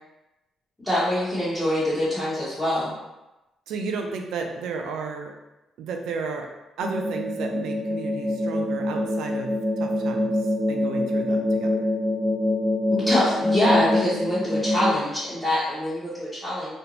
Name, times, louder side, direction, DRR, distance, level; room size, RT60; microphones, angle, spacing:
voice 1, 0.8-2.9 12.9-16.7, left 1 dB, 10° left, -11 dB, 0.9 m, -24 dB
voice 2, 3.7-5.3 5.8-6.5 6.8-11.9, right 4 dB, 85° right, 3 dB, 0.3 m, -33 dB
sound 1, 6.8-14.9, left 1 dB, 5° right, 0.4 m, -25 dB
2.5 x 2.1 x 2.9 m, 0.99 s
cardioid pair, 90°, 0 cm